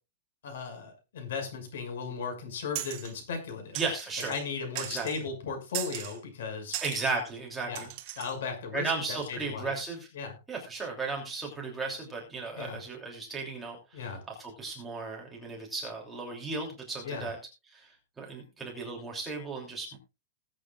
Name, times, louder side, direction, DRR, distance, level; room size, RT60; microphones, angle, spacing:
voice 1, 0.4-3.8 4.3-6.8 7.7-7.9 8.2-9.7 10.1-10.3 12.6-12.8 13.9-14.2 17.0-17.3, left 5 dB, 75° left, 5 dB, 6.2 m, -36 dB
sound 1, 2.8-3.1 3.7-4.4 4.8-5.2 5.7-6.2 6.7-7.0 7.8-8.4, right 14 dB, 30° right, 1.4 m, -38 dB
voice 2, 3.7-4.3 4.9-5.1 6.8-7.9 8.7-10.1 10.5-17.4 17.7-20.0, right 3 dB, 5° right, -1 dB, 2.9 m, -35 dB
20.0 x 8.7 x 2.4 m, 0.28 s
supercardioid pair, 180°, 0 cm